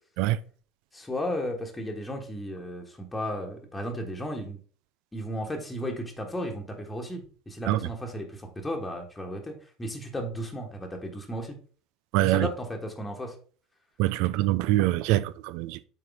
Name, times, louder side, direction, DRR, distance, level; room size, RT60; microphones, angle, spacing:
voice 1, 0.9-4.6 5.1-11.6 12.2-13.3 14.2-14.3, equal, 10° left, 1.4 m, -34 dB
voice 2, 12.1-12.5 14.0-15.8, right 16 dB, 55° right, 0.3 m, -24 dB
7.0 x 4.6 x 3.5 m
figure-of-eight pair, 65°, 0 cm